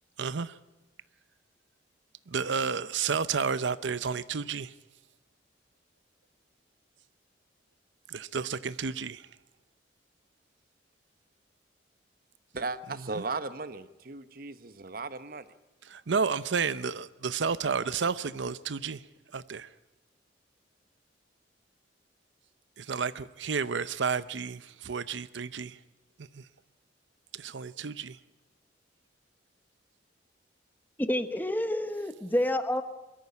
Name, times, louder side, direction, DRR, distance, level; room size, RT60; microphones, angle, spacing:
voice 1, 0.2-0.6 2.3-4.7 8.1-9.3 13.2-13.3 15.8-19.0 19.3-19.7 22.8-25.8 26.3-26.5 27.3-28.2, right 5 dB, 80° right, 0.7 m, -31 dB
voice 2, 12.5-15.5, right 3 dB, 50° right, 0.9 m, -36 dB
voice 3, 31.0-32.8, left 1 dB, 10° left, 1.0 m, -28 dB
22.5 x 13.5 x 9.7 m
head